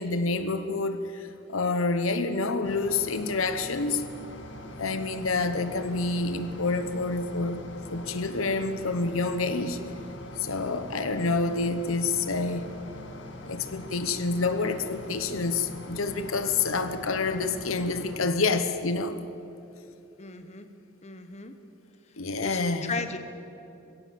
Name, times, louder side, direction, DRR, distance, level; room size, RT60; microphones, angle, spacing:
voice 1, 0.0-4.0 4.8-9.8 10.4-12.7 13.4-19.2 22.2-23.0, left 3 dB, 75° left, 10 dB, 1.1 m, -28 dB
sound 1, 2.6-18.2, left 1 dB, 60° left, 1.9 m, -43 dB
voice 2, 20.2-20.7 21.0-21.5 22.4-23.2, left 4 dB, 30° left, 8 dB, 1.1 m, -36 dB
22.5 x 16.5 x 7.7 m, 2.8 s
head